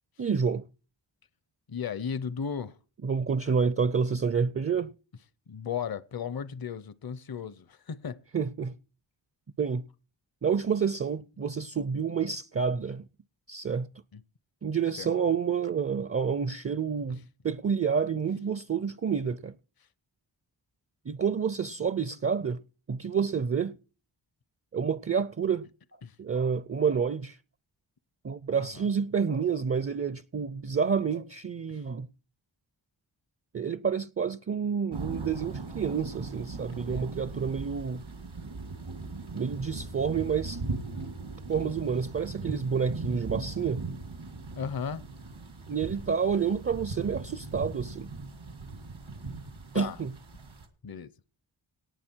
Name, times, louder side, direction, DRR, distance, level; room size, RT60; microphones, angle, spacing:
voice 1, 0.2-0.7 3.0-4.9 8.3-8.8 9.6-9.9 10.4-13.1 13.5-13.9 14.6-19.5 21.1-22.6 22.9-23.8 24.7-25.7 26.2-27.4 28.2-32.1 33.5-38.0 39.3-40.6 41.5-43.8 45.7-48.1 49.7-50.1, right 6 dB, 30° right, 0.5 m, -29 dB
voice 2, 1.7-2.7 5.5-8.2 14.1-14.2 15.0-15.1 26.0-26.1 28.6-28.9 31.7-31.8 36.7-37.1 44.6-45.0 49.7-50.0 50.8-51.1, left 7 dB, 50° left, 0.7 m, -35 dB
sound 1, 34.9-50.7, right 3 dB, 90° right, 2.2 m, -39 dB
18.0 x 6.9 x 4.5 m
wide cardioid pair, 40°, 46 cm